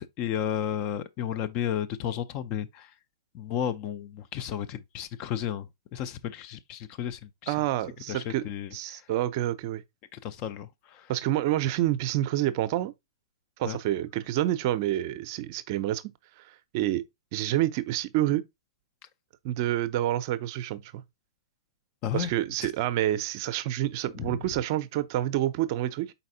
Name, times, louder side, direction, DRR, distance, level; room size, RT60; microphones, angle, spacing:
voice 1, 0.0-2.9 3.3-7.5 8.1-9.0 10.1-11.1 13.6-13.8 22.0-22.3 22.6-22.7 24.1-24.4, left 10 dB, 35° left, 0.4 m, -33 dB
voice 2, 7.5-8.4 8.7-9.8 11.1-12.9 13.6-16.0 16.4-16.5 16.7-17.0 17.3-18.4 19.4-21.0 22.1-26.1, right 13 dB, 45° right, 0.5 m, -28 dB
4.1 x 4.0 x 2.6 m
hypercardioid pair, 120°, 3 cm